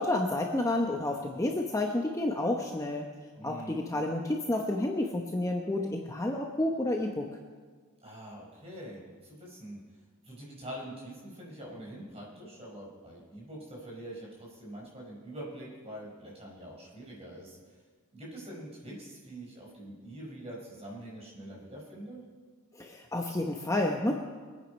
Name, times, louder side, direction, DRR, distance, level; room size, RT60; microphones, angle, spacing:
voice 1, 0.0-3.1 3.4-7.2 22.8-24.2, left 1 dB, 15° left, 1 dB, 0.9 m, -30 dB
voice 2, 3.4-3.9 8.0-9.8 10.2-17.6 18.1-22.2, right 1 dB, 25° right, -3 dB, 4.8 m, -44 dB
23.5 x 9.3 x 5.4 m, 1.5 s
head